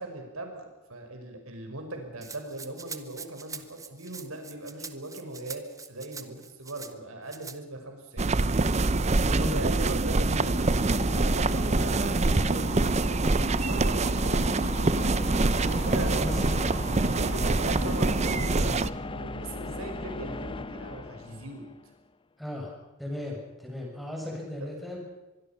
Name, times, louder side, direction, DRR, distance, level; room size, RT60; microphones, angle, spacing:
voice 1, 0.0-8.7 9.3-14.6 15.5-16.3 17.1-18.8 19.1-21.6 24.2-24.7, right 2 dB, 80° right, 4 dB, 5.3 m, -39 dB
Rattle (instrument), 2.2-6.9 7.3-7.6, right 5 dB, 15° right, 1.2 m, -43 dB
sound 1, 8.2-18.9, right 2 dB, 30° right, 0.7 m, -25 dB
sound 2, 9.2-21.9, left 2 dB, 25° left, 0.7 m, -39 dB
voice 2, 9.2-9.6 11.7-12.0 15.2-16.7 18.6-18.8 22.4-25.0, left 1 dB, ahead, -2 dB, 7.1 m, -37 dB
24.5 x 22.0 x 5.8 m, 1.1 s
head